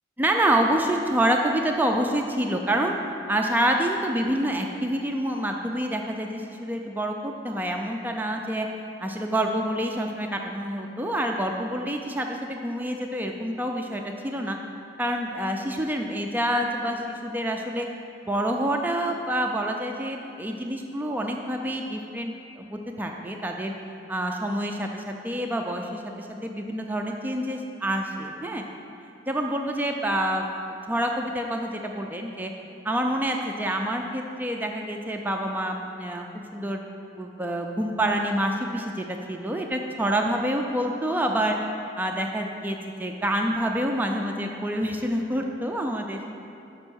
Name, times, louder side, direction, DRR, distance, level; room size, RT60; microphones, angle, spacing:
voice 1, 0.2-3.0 3.3-8.7 9.0-14.6 15.0-17.9 18.3-23.7 24.1-28.6 29.3-30.5 30.9-32.5 32.8-36.8 37.2-41.6 42.0-46.3, right 1 dB, 10° right, 2 dB, 0.3 m, -27 dB
6.6 x 5.3 x 6.2 m, 2.7 s
head